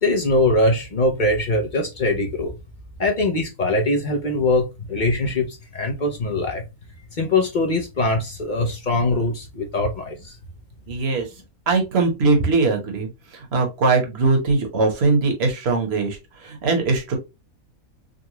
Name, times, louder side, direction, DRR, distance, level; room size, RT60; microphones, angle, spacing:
voice 1, 0.0-2.5 3.0-6.6 7.1-10.4, left 2 dB, 50° left, 0.6 m, -22 dB
voice 2, 10.9-11.3 11.7-17.2, right 3 dB, 50° right, 1.2 m, -21 dB
3.8 x 2.2 x 2.9 m
omnidirectional pair, 1.5 m